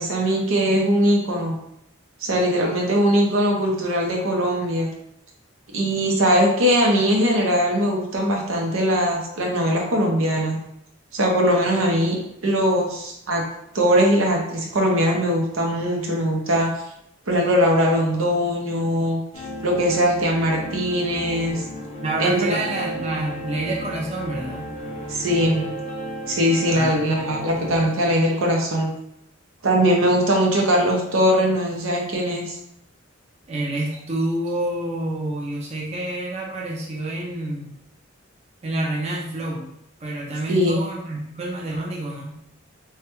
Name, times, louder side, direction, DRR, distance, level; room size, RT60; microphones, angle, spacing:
voice 1, 0.0-1.6 2.2-4.9 5.7-10.6 11.1-12.2 12.4-13.4 13.7-16.7 17.3-19.2 19.6-21.6 22.2-22.6 25.1-25.6 26.3-28.9 29.6-32.6 40.5-40.8, equal, 85° right, 0 dB, 0.7 m, -20 dB
sound 1, 19.3-27.9, equal, 30° left, 0.4 m, -34 dB
voice 2, 22.0-24.8 26.7-27.3 27.6-28.1 33.5-37.8 38.6-39.7 40.0-42.4, right 1 dB, 30° right, -3 dB, 0.4 m, -28 dB
3.2 x 2.3 x 2.9 m, 0.78 s
head